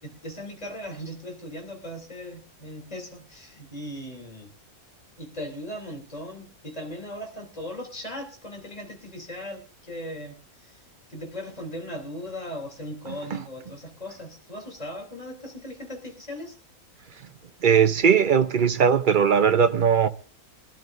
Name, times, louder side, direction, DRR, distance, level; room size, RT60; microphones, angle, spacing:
voice 1, 0.0-4.5 5.2-10.8 11.1-16.6, equal, 25° left, 3.2 m, -38 dB
voice 2, 17.6-20.1, right 7 dB, 50° right, 0.6 m, -19 dB
23.0 x 12.5 x 2.6 m
omnidirectional pair, 1.6 m